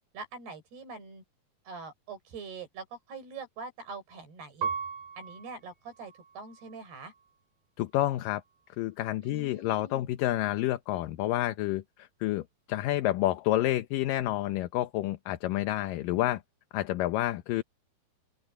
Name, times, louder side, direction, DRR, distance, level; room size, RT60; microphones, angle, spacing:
voice 1, 0.1-1.2 1.7-4.7 5.2-7.1 9.2-10.1, right 4 dB, 90° right, 7.7 m, -44 dB
Piano, 4.6-7.4 8.0-8.7, right 6 dB, 65° right, 4.4 m, -39 dB
voice 2, 7.8-8.4 8.8-16.4 16.7-17.6, left 15 dB, 75° left, 2.3 m, -29 dB
open air
omnidirectional pair, 4.5 m